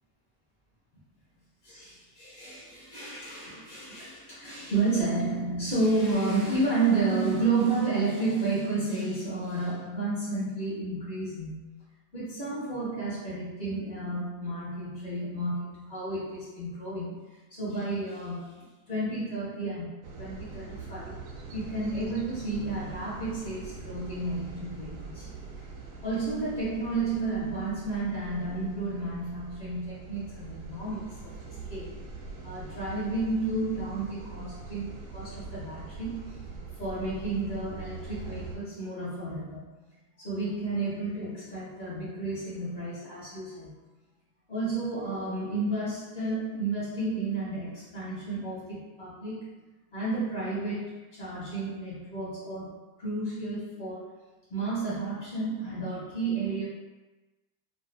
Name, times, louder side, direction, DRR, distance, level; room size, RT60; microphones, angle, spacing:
voice 1, 1.6-11.8 12.1-21.2 21.5-25.3 26.0-32.0 32.4-36.4 36.8-39.7 40.2-43.8 44.5-49.6 49.9-54.1 54.5-56.6, right 3 dB, 15° left, -10 dB, 0.7 m, -31 dB
sound 1, 20.0-38.6, right 4 dB, 45° right, 0.6 m, -43 dB
2.3 x 2.2 x 2.6 m, 1.2 s
supercardioid pair, 150°, 46 cm